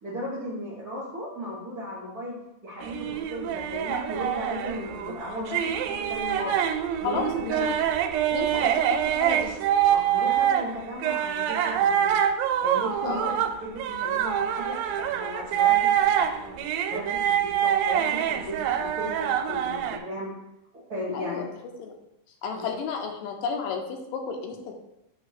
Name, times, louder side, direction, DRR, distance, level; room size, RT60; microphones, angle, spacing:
voice 1, 0.0-2.4 2.6-6.6 7.0-7.8 8.5-8.7 9.9-12.2 12.6-15.9 16.2-16.6 16.9-17.2 17.6-20.3 20.9-21.6 22.5-22.7, equal, 65° right, -6 dB, 0.9 m, -36 dB
sound 1, 2.8-10.6 11.0-20.0, right 10 dB, 90° right, 2.3 m, -25 dB
voice 2, 7.0-7.7 8.3-8.7 9.1-9.5 13.0-13.3 21.1-21.5 21.8-21.9 22.4-24.7, left 6 dB, 80° left, 2 dB, 2.4 m, -32 dB
7.5 x 2.8 x 5.7 m, 0.86 s
omnidirectional pair, 3.9 m